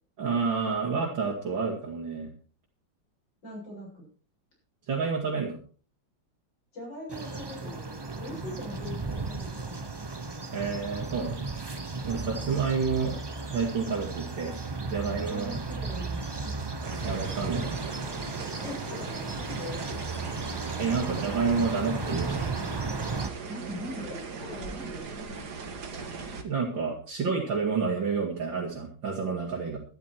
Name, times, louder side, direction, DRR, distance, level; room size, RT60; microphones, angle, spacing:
voice 1, 0.2-2.3 4.9-5.6 10.5-11.5 12.0-13.1 13.5-14.6 14.8-15.6 17.0-17.8 20.8-22.5 26.4-29.8, right 5 dB, 75° right, -3 dB, 3.2 m, -29 dB
voice 2, 3.4-4.1 6.7-10.0 12.4-12.5 15.0-16.5 18.6-19.8 23.5-25.5, left 1 dB, 65° left, -3 dB, 8.0 m, -41 dB
sound 1, 7.1-23.3, right 3 dB, 30° right, 0.4 m, -35 dB
sound 2, 16.8-26.4, right 4 dB, 55° right, 2.1 m, -39 dB
12.5 x 12.5 x 4.5 m, 0.40 s
omnidirectional pair, 2.1 m